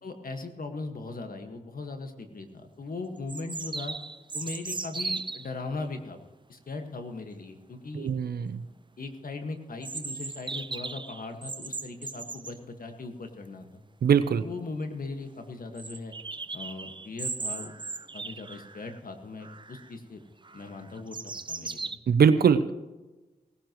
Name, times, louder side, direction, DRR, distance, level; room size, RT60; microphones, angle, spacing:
voice 1, 0.0-4.0 4.3-6.2 6.5-8.1 9.0-13.8 14.4-16.1 16.5-17.7 18.1-20.2 20.5-21.2 21.5-22.0, left 3 dB, 65° left, 5 dB, 1.8 m, -39 dB
sound 1, 2.3-2.4 3.3-5.5 9.8-12.6 14.2-14.3 14.6-14.7 15.0-15.1 15.8-19.0 19.4-19.9 20.4-22.0, right 3 dB, 30° right, 0.7 m, -37 dB
voice 2, 7.9-8.6 14.0-14.4 22.1-22.7, right 7 dB, 85° right, 13 dB, 0.7 m, -22 dB
17.5 x 15.5 x 3.1 m, 1.2 s
cardioid pair, 45°, 15 cm